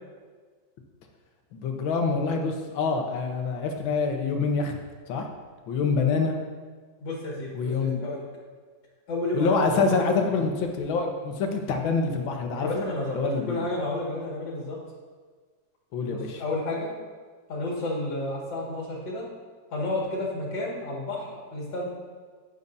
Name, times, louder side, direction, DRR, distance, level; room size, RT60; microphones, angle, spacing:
voice 1, 1.5-4.7 5.1-5.3 5.7-6.4 7.5-8.0 9.3-12.7 13.1-13.7 15.9-16.4, left 4 dB, 85° left, 3 dB, 1.8 m, -26 dB
voice 2, 7.0-7.7 8.0-8.2 9.1-9.8 12.6-13.2 13.5-14.8 16.1-16.9 17.5-19.2 19.7-21.8, left 2 dB, 70° left, -4 dB, 2.7 m, -31 dB
12.0 x 9.7 x 2.7 m, 1.5 s
omnidirectional pair, 2.1 m